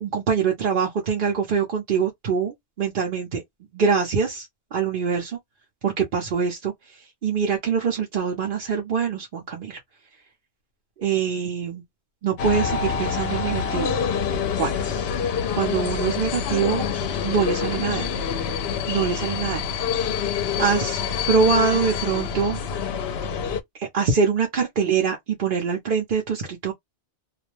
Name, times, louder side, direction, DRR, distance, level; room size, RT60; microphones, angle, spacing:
voice 1, 0.0-3.4 3.7-5.4 5.8-6.7 7.2-9.8 11.0-11.8 12.2-13.9 14.6-14.8 15.6-16.9 17.2-18.1 18.9-19.6 19.9-20.0 20.6-21.0 21.3-22.6 23.8-26.7, right 6 dB, 55° right, 0.8 m, -24 dB
sound 1, 12.4-23.6, left 7 dB, 70° left, 0.8 m, -26 dB
2.4 x 2.1 x 3.0 m
omnidirectional pair, 1.1 m